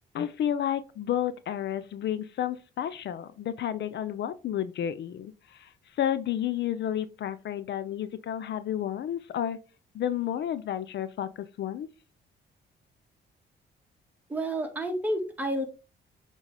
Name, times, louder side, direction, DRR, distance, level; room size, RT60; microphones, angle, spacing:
voice 1, 0.1-9.6 9.9-11.9, left 10 dB, 65° left, 0.6 m, -31 dB
voice 2, 14.3-15.6, right 1 dB, 10° right, 1.9 m, -30 dB
7.2 x 4.0 x 3.4 m
cardioid pair, 90°, 20 cm